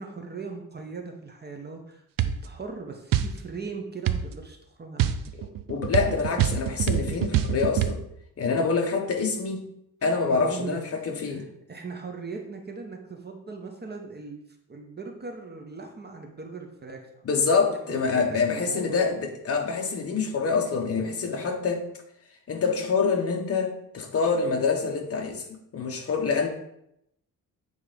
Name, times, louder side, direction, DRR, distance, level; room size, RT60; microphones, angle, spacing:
voice 1, 0.0-5.2 10.2-10.8 11.3-14.4 14.7-17.2 17.5-19.1, right 4 dB, 30° right, 3 dB, 0.8 m, -39 dB
sound 1, 2.2-2.4 3.1-3.3 4.1-4.3 5.0-7.9, right 10 dB, 65° right, 0.6 m, -25 dB
voice 2, 5.7-8.0 8.4-9.6 10.0-11.4 17.2-21.8 22.5-26.5, left 5 dB, 40° left, 3 dB, 1.1 m, -26 dB
8.1 x 3.6 x 5.0 m, 0.77 s
wide cardioid pair, 155°, 36 cm